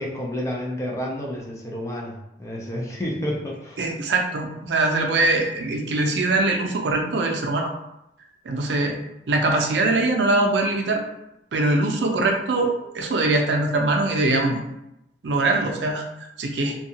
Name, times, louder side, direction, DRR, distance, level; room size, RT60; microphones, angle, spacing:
voice 1, 0.0-3.8, equal, 15° left, -2 dB, 0.4 m, -30 dB
voice 2, 3.8-7.7 8.4-9.0 9.3-11.0 11.5-14.6 15.2-16.0 16.4-16.8, right 2 dB, 80° right, 2 dB, 0.5 m, -22 dB
2.7 x 2.3 x 2.7 m, 0.87 s
head